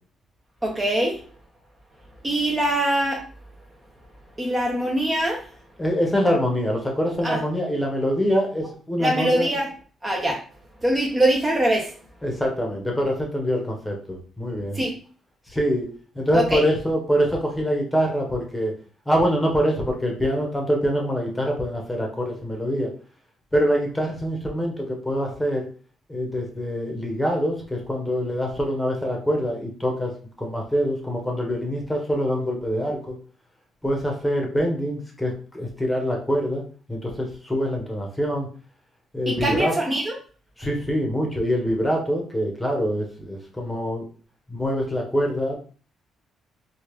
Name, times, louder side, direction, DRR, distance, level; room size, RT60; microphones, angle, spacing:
voice 1, 0.6-1.2 2.2-3.2 4.4-5.4 7.2-7.4 9.0-9.7 10.0-10.4 10.8-11.9 14.7-15.0 16.3-16.6 39.3-40.2, right 1 dB, 20° right, -1 dB, 0.8 m, -23 dB
voice 2, 5.8-9.5 12.2-14.8 15.5-15.9 16.1-18.7 19.1-22.9 23.5-25.7 26.1-30.1 30.4-33.1 33.8-36.6 36.9-38.5 39.1-39.7 40.6-44.0 44.5-45.6, equal, 10° left, 0 dB, 1.1 m, -24 dB
3.3 x 2.4 x 3.1 m, 0.40 s
cardioid pair, 90°, 0 cm